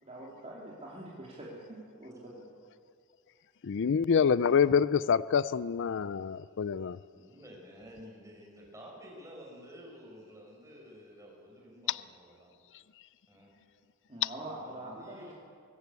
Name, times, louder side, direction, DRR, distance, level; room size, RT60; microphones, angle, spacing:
voice 1, 0.0-2.5 14.1-15.3, right 1 dB, 30° right, -5 dB, 2.8 m, -44 dB
voice 2, 3.6-7.0 11.9-12.0 14.2-14.3, left 7 dB, 55° left, 17 dB, 0.4 m, -26 dB
voice 3, 7.1-12.5 13.3-13.5 14.6-15.3, equal, 15° right, -2 dB, 5.7 m, -51 dB
23.5 x 13.5 x 8.4 m, 2.2 s
head